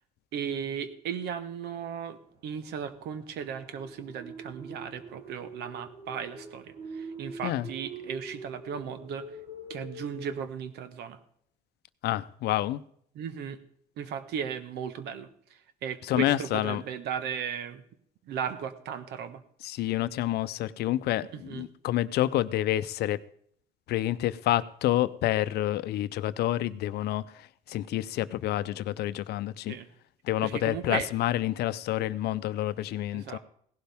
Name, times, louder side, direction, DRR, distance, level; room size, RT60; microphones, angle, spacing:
voice 1, 0.3-9.4 9.7-11.2 13.1-13.6 14.0-17.8 18.3-19.4 21.3-21.6 29.7-29.9 30.4-31.1 33.1-33.4, right 7 dB, 80° right, 1.3 m, -36 dB
sound 1, 2.3-10.5, right 2 dB, 35° right, 3.1 m, -44 dB
voice 2, 12.0-12.8 16.1-16.8 19.6-23.2 23.9-29.7 30.2-33.4, left 14 dB, 75° left, 0.6 m, -28 dB
17.0 x 12.0 x 3.6 m
cardioid pair, 110°, 17 cm